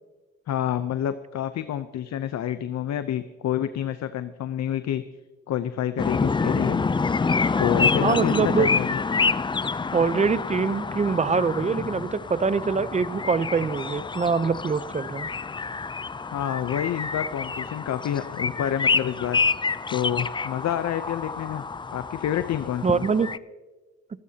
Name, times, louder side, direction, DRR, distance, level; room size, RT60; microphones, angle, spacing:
voice 1, 0.5-5.0 5.5-6.8 7.6-9.0 16.3-19.6 19.9-23.1, left 10 dB, 60° left, 11 dB, 0.7 m, -28 dB
sound 1, 6.0-23.4, left 4 dB, 15° left, 0.4 m, -27 dB
voice 2, 8.0-8.7 9.9-15.3 22.8-23.3, right 5 dB, 25° right, 16 dB, 0.7 m, -24 dB
27.0 x 13.5 x 2.9 m, 1.3 s
cardioid pair, 90°, 30 cm